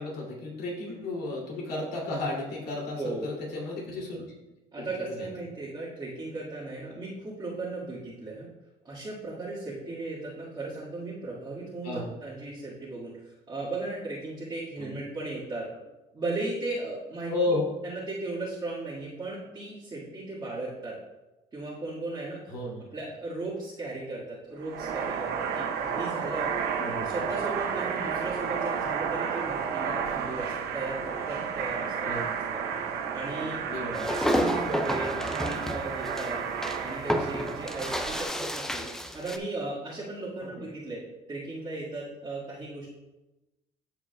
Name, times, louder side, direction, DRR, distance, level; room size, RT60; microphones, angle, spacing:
voice 1, 0.0-4.2 4.8-5.3 11.8-12.1 14.8-15.0 17.3-17.6 22.5-22.9 26.8-27.1 32.0-32.4 33.7-34.1, left 2 dB, 70° left, -3 dB, 2.7 m, -33 dB
voice 2, 3.0-3.3 4.7-8.5 8.8-15.7 16.1-17.3 17.8-21.0 21.5-22.5 22.9-26.5 27.0-32.6 33.1-33.6 34.1-36.4 36.8-38.9 39.1-41.0 41.3-42.9, right 2 dB, 25° right, -10 dB, 1.8 m, -36 dB
sound 1, 24.6-38.2, right 7 dB, 70° right, 0.8 m, -32 dB
sound 2, 33.9-39.4, equal, 5° left, 0.5 m, -30 dB
13.0 x 4.9 x 2.3 m, 1.0 s
cardioid pair, 110°, 17 cm